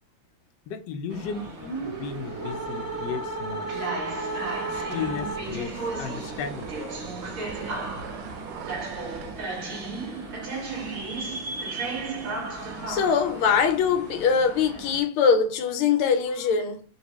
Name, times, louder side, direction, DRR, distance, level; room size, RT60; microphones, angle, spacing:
voice 1, 0.7-3.8 4.7-6.7, left 6 dB, 70° left, 1.1 m, -35 dB
sound 1, 1.1-15.0, right 3 dB, 55° right, 1.0 m, -35 dB
sound 2, 1.6-5.8, right 2 dB, 10° right, 1.4 m, -33 dB
sound 3, 4.7-9.4, right 6 dB, 85° right, 1.5 m, -41 dB
voice 2, 12.7-16.8, left 6 dB, 85° left, 1.5 m, -22 dB
4.2 x 2.6 x 2.9 m
omnidirectional pair, 2.3 m